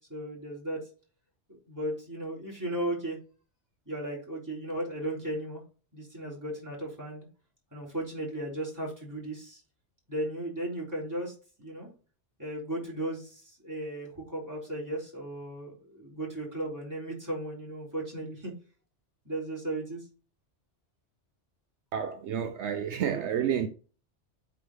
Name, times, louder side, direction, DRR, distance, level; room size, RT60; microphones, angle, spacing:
voice 1, 0.1-0.8 1.5-3.2 3.9-5.6 5.9-7.3 7.7-9.6 10.1-11.9 12.4-18.5 19.3-20.1, right 1 dB, 15° right, 3.6 m, -36 dB
voice 2, 21.9-23.7, right 8 dB, 75° right, 0.9 m, -30 dB
8.2 x 4.7 x 3.7 m
omnidirectional pair, 1.2 m